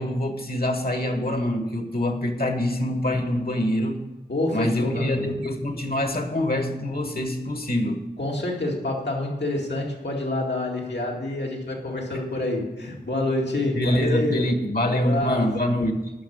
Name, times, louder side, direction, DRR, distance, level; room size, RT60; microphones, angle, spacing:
voice 1, 0.0-4.0 4.5-8.0 13.7-16.1, left 1 dB, 60° left, 5 dB, 1.4 m, -25 dB
voice 2, 4.3-5.3 8.2-14.5 14.8-15.5, left 2 dB, 90° left, -2 dB, 2.2 m, -27 dB
10.0 x 6.1 x 8.7 m, 1.1 s
wide cardioid pair, 55°, 17 cm